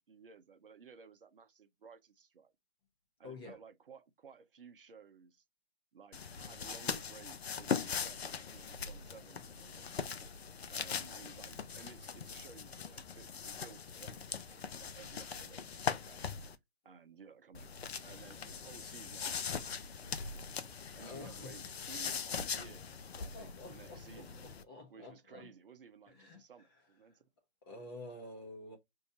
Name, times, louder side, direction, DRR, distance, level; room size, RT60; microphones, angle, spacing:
voice 1, 0.0-2.5 3.2-5.4 5.9-10.2 10.7-16.4 16.8-17.7 18.0-20.4 21.0-24.4 24.9-27.2, right 6 dB, 55° right, 0.7 m, -56 dB
voice 2, 3.2-3.6 21.0-21.6 23.2-25.5 26.1-26.4 27.6-28.8, left 2 dB, 20° left, 1.0 m, -49 dB
sound 1, 6.1-16.6 17.5-24.6, left 6 dB, 65° left, 0.6 m, -41 dB
5.2 x 2.7 x 2.7 m
figure-of-eight pair, 150°, 34 cm